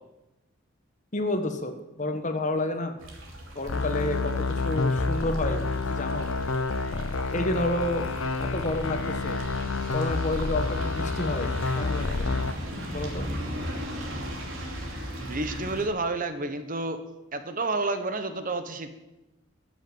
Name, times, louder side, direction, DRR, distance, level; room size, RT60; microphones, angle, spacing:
voice 1, 1.1-3.0 3.5-6.3 7.3-8.0 8.5-9.4 9.9-11.5 11.8-12.3 12.9-13.3, left 1 dB, 40° left, 7 dB, 1.4 m, -30 dB
sound 1, 3.0-15.9, equal, 75° right, 2.9 m, -37 dB
sound 2, 3.7-12.5, left 3 dB, 75° left, 0.7 m, -29 dB
voice 2, 15.2-17.0 17.3-19.0, right 3 dB, 40° right, 9 dB, 1.0 m, -30 dB
14.0 x 7.4 x 7.9 m, 0.99 s
head